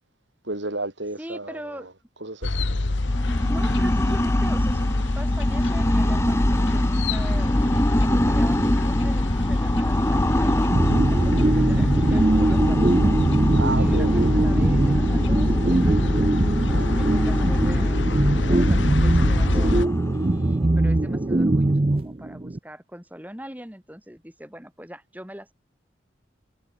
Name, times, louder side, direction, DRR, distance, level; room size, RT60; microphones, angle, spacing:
voice 1, 0.4-1.9 2.2-2.7 13.6-14.4 16.7-17.3, right 2 dB, 80° right, 6.9 m, -33 dB
voice 2, 1.2-1.9 3.5-4.9 5.2-13.1 13.8-16.0 16.6-25.5, equal, 10° right, 5.2 m, -41 dB
sound 1, 2.4-19.9, left 2 dB, 85° left, 1.2 m, -24 dB
sound 2, 3.0-21.7, equal, 15° left, 2.6 m, -26 dB
sound 3, 10.7-22.6, right 2 dB, 30° right, 0.5 m, -22 dB
head